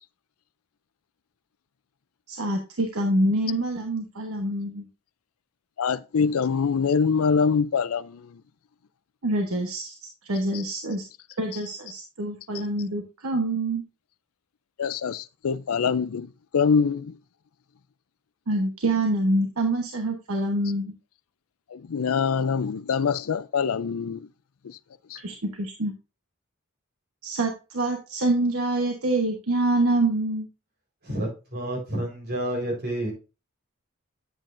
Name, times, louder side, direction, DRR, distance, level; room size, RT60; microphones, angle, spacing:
voice 1, 2.3-4.9 9.2-10.0 10.2-11.0 11.4-13.8 18.5-20.9 25.2-25.9 27.2-30.5, right 1 dB, 85° right, 1.1 m, -26 dB
voice 2, 5.8-8.4 10.5-10.6 14.8-17.2 21.7-24.3 24.6-24.8 25.1-25.2, left 6 dB, 80° left, 0.5 m, -24 dB
voice 3, 31.0-33.1, right 1 dB, 50° right, 4.1 m, -29 dB
8.9 x 7.6 x 2.6 m
head